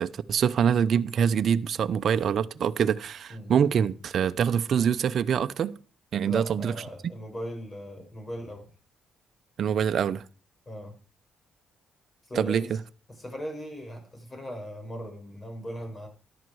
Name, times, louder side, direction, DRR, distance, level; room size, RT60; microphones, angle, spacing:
voice 1, 0.0-5.8 6.1-6.7 9.6-10.2 12.3-12.6, right 8 dB, 60° right, 0.8 m, -25 dB
voice 2, 6.3-8.7 10.7-11.0 12.3-12.8 13.1-16.1, equal, 30° left, 6.9 m, -38 dB
13.5 x 11.5 x 4.9 m
supercardioid pair, 55°, 0 cm